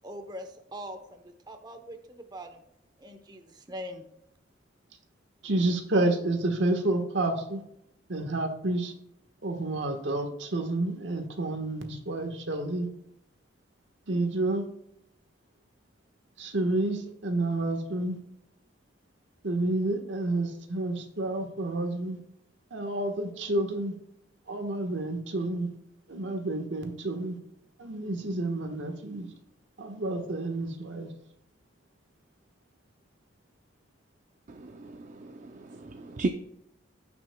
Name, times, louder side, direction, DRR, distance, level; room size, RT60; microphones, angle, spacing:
voice 1, 0.0-2.6 3.0-4.0, equal, 25° right, 6 dB, 0.8 m, -42 dB
voice 2, 5.4-7.6 8.1-8.9 9.4-12.9 14.1-14.7 16.4-18.2 19.4-22.2 22.7-23.9 24.5-25.7 26.1-27.4 27.8-29.3 29.8-31.1, right 2 dB, 75° right, 5 dB, 1.3 m, -29 dB
voice 3, 34.5-36.3, right 3 dB, 45° right, 6 dB, 0.5 m, -35 dB
15.5 x 5.9 x 2.2 m, 0.78 s
head